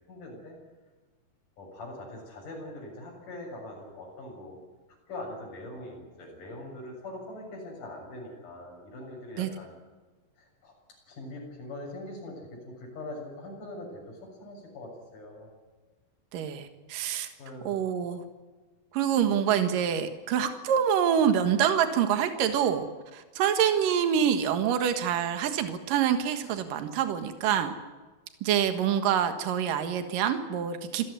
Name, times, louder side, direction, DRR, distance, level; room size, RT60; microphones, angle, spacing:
voice 1, 0.1-0.6 1.6-4.6 5.1-9.7 10.4-10.7 11.1-15.5 17.4-17.8, left 1 dB, 60° left, -1 dB, 8.5 m, -42 dB
voice 2, 16.3-17.3 17.7-18.2 18.9-27.7 28.4-31.1, right 8 dB, 70° right, 8 dB, 3.2 m, -26 dB
27.5 x 15.5 x 9.6 m, 1.3 s
omnidirectional pair, 4.2 m